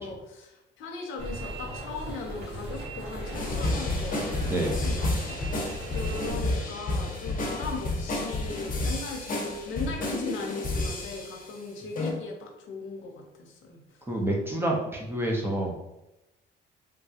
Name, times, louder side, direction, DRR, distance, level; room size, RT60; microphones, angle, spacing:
voice 1, 0.0-13.8, left 3 dB, 80° left, 2 dB, 0.7 m, -38 dB
sound 1, 1.2-6.3, right 1 dB, 65° right, 1.5 m, -38 dB
sound 2, 3.3-11.5 12.0-12.1, left 2 dB, 45° left, 0.9 m, -31 dB
voice 2, 4.5-4.9 14.1-15.7, right 1 dB, 10° right, -1 dB, 0.7 m, -28 dB
3.5 x 2.2 x 2.8 m, 0.93 s
cardioid pair, 90°, 20 cm